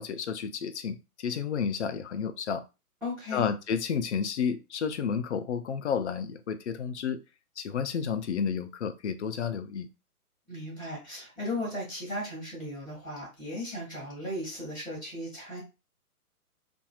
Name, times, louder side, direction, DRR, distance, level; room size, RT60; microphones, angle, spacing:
voice 1, 0.0-2.6 3.3-7.2 7.6-9.9, left 7 dB, 50° left, 0.5 m, -31 dB
voice 2, 3.0-3.5 10.5-15.6, left 1 dB, ahead, 0.6 m, -36 dB
2.8 x 2.5 x 2.3 m
figure-of-eight pair, 135°, 45 cm